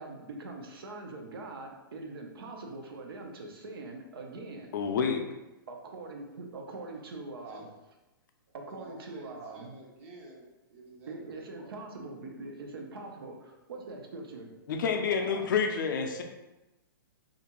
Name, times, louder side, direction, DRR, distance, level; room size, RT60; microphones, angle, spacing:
voice 1, 0.0-4.7 5.7-8.0 8.5-9.8 11.1-14.5 15.0-15.5, right 3 dB, 85° right, 2 dB, 0.6 m, -43 dB
voice 2, 4.7-5.3 14.7-16.2, left 6 dB, 60° left, 4 dB, 0.4 m, -28 dB
voice 3, 8.7-11.8, right 2 dB, 40° right, 0 dB, 0.5 m, -51 dB
2.4 x 2.2 x 2.9 m, 1.0 s
hypercardioid pair, 155°, 12 cm